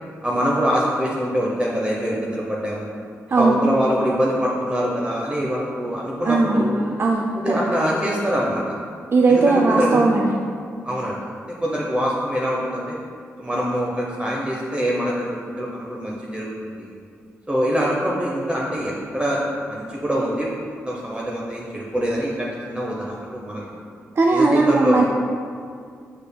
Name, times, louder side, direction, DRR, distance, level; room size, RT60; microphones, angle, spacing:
voice 1, 0.2-2.9 3.4-6.8 7.3-8.8 9.3-10.1 10.8-11.2 11.6-13.0 13.4-16.9 17.5-20.5 20.9-23.6 24.3-25.0, equal, 15° right, -4 dB, 0.7 m, -24 dB
voice 2, 6.3-7.6 9.1-10.3 24.2-25.0, right 3 dB, 45° right, 0 dB, 0.4 m, -18 dB
6.4 x 3.3 x 2.2 m, 2.2 s
supercardioid pair, 40°, 6 cm